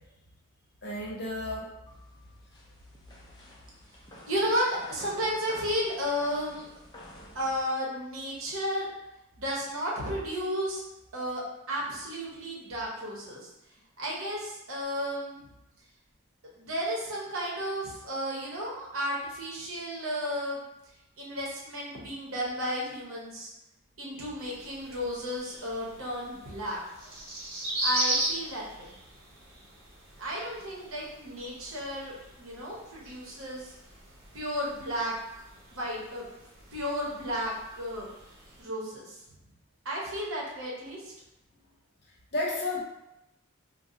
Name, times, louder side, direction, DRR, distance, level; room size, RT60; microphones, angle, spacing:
voice 1, 0.8-1.7 42.3-42.8, left 2 dB, 50° left, -3 dB, 0.7 m, -32 dB
sound 1, 1.9-7.6, left 1 dB, 20° left, 0.4 m, -51 dB
voice 2, 4.3-6.7 7.3-8.9 9.4-10.8 11.1-11.4 11.7-13.5 14.0-15.4 16.6-20.6 21.2-23.5 24.0-26.8 27.8-28.9 30.2-33.7 34.3-35.1 35.7-36.3 36.7-38.1 38.6-39.2 39.8-41.1, equal, 75° right, -4 dB, 0.8 m, -33 dB
sound 2, 24.4-38.6, right 1 dB, 55° right, 1.0 m, -38 dB
2.6 x 2.0 x 3.7 m, 0.90 s
head